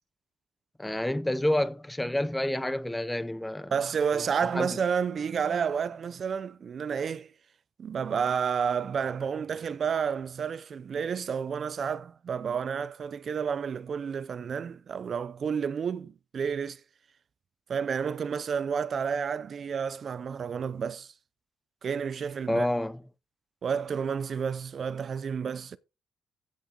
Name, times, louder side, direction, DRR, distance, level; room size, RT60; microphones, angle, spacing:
voice 1, 0.8-3.7 4.1-4.2 4.5-4.7 22.5-23.0, left 1 dB, 10° left, 0.6 m, -28 dB
voice 2, 3.7-7.3 7.8-16.8 17.7-21.1 21.8-22.7 23.6-25.8, right 6 dB, 45° right, 0.6 m, -30 dB
15.0 x 6.3 x 3.8 m
cardioid pair, 115°, 0 cm